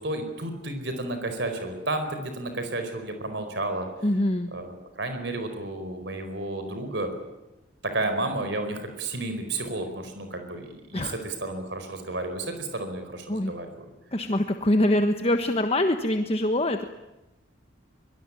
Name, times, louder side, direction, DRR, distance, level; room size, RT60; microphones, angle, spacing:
voice 1, 0.0-3.9 4.5-7.1 7.8-13.7, right 2 dB, 65° right, 7 dB, 4.6 m, -32 dB
voice 2, 4.0-4.5 10.9-11.2 13.3-13.5 14.1-16.8, left 1 dB, 30° left, 7 dB, 1.3 m, -24 dB
24.0 x 23.0 x 10.0 m, 1.0 s
head